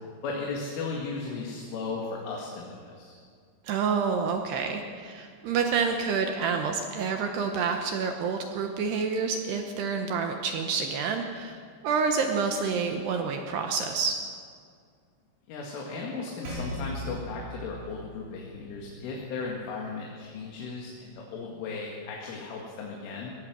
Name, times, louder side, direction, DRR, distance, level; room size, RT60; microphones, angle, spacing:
voice 1, 0.2-3.1 15.5-23.4, left 4 dB, 80° left, -2 dB, 4.6 m, -36 dB
voice 2, 3.6-11.6 11.8-14.2, right 5 dB, 70° right, 4 dB, 2.8 m, -28 dB
Percussion, 16.4-21.2, equal, 45° right, 6.2 m, -41 dB
23.0 x 18.5 x 6.2 m, 2.1 s
omnidirectional pair, 5.7 m